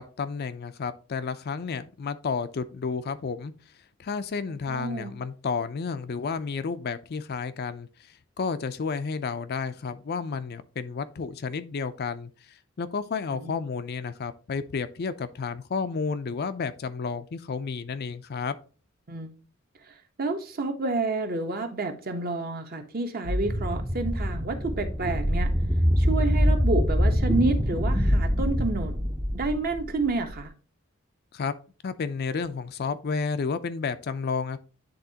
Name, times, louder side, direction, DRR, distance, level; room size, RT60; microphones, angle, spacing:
voice 1, 0.0-3.5 4.0-7.9 8.4-12.3 12.8-18.6 31.3-31.5 31.8-34.6, left 5 dB, 50° left, 0.4 m, -31 dB
voice 2, 4.7-5.1 13.3-13.5 19.1-19.3 20.2-25.5 26.0-29.0 29.3-30.5, right 3 dB, 45° right, 0.9 m, -29 dB
sound 1, 23.2-30.4, equal, 10° right, 0.5 m, -24 dB
10.0 x 3.5 x 2.8 m
head